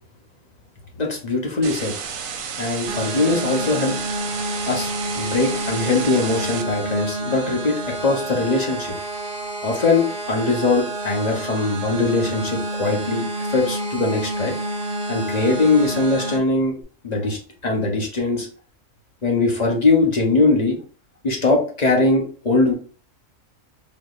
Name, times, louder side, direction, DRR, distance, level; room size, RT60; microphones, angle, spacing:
voice 1, 1.0-1.9 2.6-3.9 4.7-4.9 5.1-8.9 9.6-14.5 15.1-16.8 17.0-18.5 19.2-20.8 21.2-22.7, left 3 dB, 35° left, 0 dB, 0.8 m, -21 dB
sound 1, 1.6-6.6, right 6 dB, 85° right, 1.0 m, -32 dB
sound 2, 2.9-16.4, right 1 dB, 45° right, 1.2 m, -28 dB
3.6 x 3.1 x 2.4 m, 0.40 s
omnidirectional pair, 1.4 m